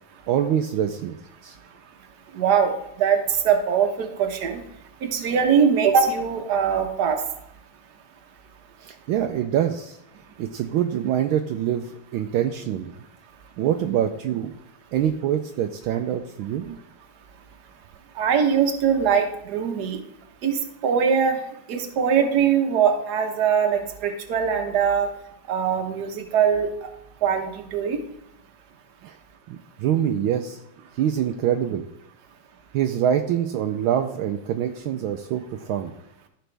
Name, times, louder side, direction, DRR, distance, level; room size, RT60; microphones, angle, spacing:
voice 1, 0.3-1.2 1.4-1.6 8.8-10.0 10.4-12.9 13.6-14.5 14.9-16.8 29.0-29.1 29.5-30.6 31.0-31.8 32.7-35.9, right 10 dB, 75° right, 5 dB, 1.4 m, -25 dB
voice 2, 2.3-2.7 3.0-3.2 3.4-4.6 5.0-7.2 18.2-20.0 20.4-21.4 21.7-25.1 25.5-26.7 27.2-28.0, right 7 dB, 55° right, 4 dB, 1.5 m, -21 dB
14.5 x 5.1 x 3.3 m, 0.79 s
omnidirectional pair, 2.3 m